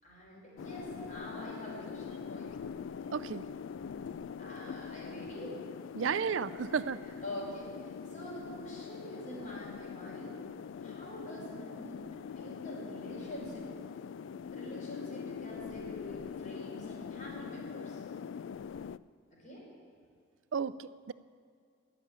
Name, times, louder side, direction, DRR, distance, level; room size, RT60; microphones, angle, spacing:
voice 1, 0.0-2.7 4.4-5.6 6.0-6.1 7.2-10.3 10.8-12.0 12.3-13.7 14.5-18.0 19.4-19.6, equal, 40° left, -4 dB, 5.2 m, -45 dB
sound 1, 0.6-19.0, left 6 dB, 75° left, 0.3 m, -43 dB
voice 2, 3.1-3.5 5.9-7.0 20.5-21.1, right 6 dB, 90° right, 15 dB, 0.5 m, -33 dB
20.0 x 6.9 x 8.7 m, 2.2 s
head